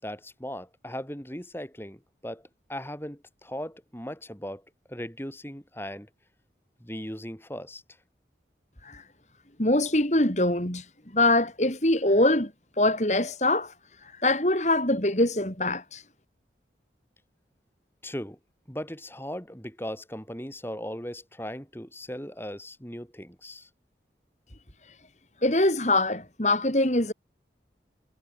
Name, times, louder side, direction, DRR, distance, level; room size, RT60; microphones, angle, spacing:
voice 1, 0.0-4.6 4.9-6.1 6.8-7.8 18.0-18.4 18.7-23.7, equal, 15° left, 5.4 m, -38 dB
voice 2, 9.6-10.9 11.1-12.5 12.8-13.7 14.0-16.0 25.4-27.1, left 1 dB, 40° left, 3.7 m, -23 dB
head